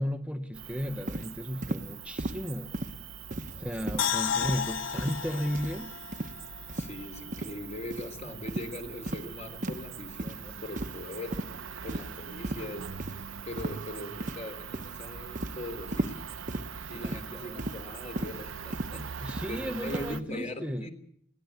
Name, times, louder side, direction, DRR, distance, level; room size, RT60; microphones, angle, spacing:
voice 1, 0.0-2.7 3.6-5.9 16.8-17.6 19.2-20.9, equal, 5° right, 6 dB, 0.9 m, -34 dB
Cricket, 0.5-20.2, right 7 dB, 85° right, 0.9 m, -43 dB
sound 1, 1.1-1.3 1.6-1.8 2.2-2.4 2.7-3.0 3.3-3.6 3.9-4.1 4.4-4.7 5.0-5.2 5.5-5.8 6.1-6.3 6.7-6.9 7.3-7.5 7.9-8.1 8.5-8.7 9.1-9.3 9.6-9.8 10.2-10.4 10.8-11.0 11.3-11.5 11.9-12.2 12.4-12.6 13.0-13.1 13.6-13.9 14.2-14.5 14.7-15.0 15.3-15.6 15.9-16.2 16.5-16.7 17.0-17.2 17.6-17.8 18.2-18.3 18.7-18.9 19.3-19.5 19.9-20.1, right 1 dB, 40° right, 1.0 m, -35 dB
voice 2, 3.3-4.0 4.2-4.5 6.7-11.4 11.8-12.9 13.4-16.3 16.9-20.9, left 1 dB, 35° left, 6 dB, 3.5 m, -41 dB
sound 2, 4.0-7.2 7.5-7.6, left 8 dB, 85° left, 0.9 m, -33 dB
22.0 x 17.0 x 8.1 m, 0.69 s
head